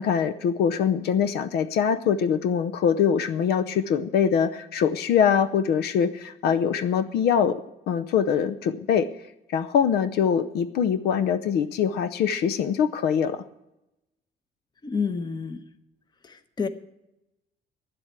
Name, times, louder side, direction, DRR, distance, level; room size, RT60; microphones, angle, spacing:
voice 1, 0.0-7.6 7.9-9.1 9.5-13.4, left 7 dB, 70° left, 11 dB, 0.7 m, -23 dB
voice 2, 14.8-15.6 16.2-16.7, left 5 dB, 25° left, 10 dB, 1.0 m, -29 dB
10.5 x 7.8 x 8.9 m, 0.89 s
cardioid pair, 110°, 17 cm